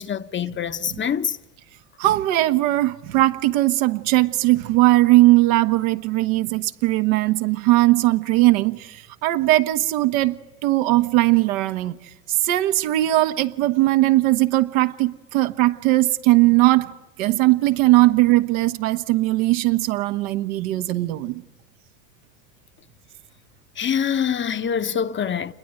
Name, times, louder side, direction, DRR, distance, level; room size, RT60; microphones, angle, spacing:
voice 1, 0.0-1.4 23.8-25.5, left 8 dB, 25° left, 1.1 m, -25 dB
voice 2, 2.0-10.3 10.6-12.0 12.4-16.9 17.2-21.4, right 18 dB, 60° right, 1.4 m, -19 dB
28.5 x 21.0 x 9.3 m
hypercardioid pair, 80°, 47 cm